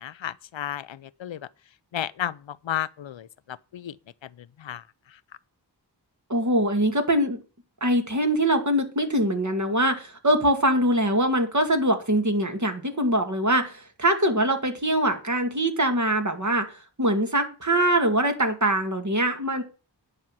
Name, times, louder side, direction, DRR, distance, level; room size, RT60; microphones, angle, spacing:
voice 1, 0.0-1.4 1.9-2.3 2.7-3.3 3.7-3.9 4.6-4.8, left 11 dB, 90° left, 0.6 m, -32 dB
voice 2, 6.3-7.4 7.8-19.6, right 1 dB, 40° right, 2.1 m, -23 dB
9.8 x 5.6 x 7.5 m
wide cardioid pair, 55°, 44 cm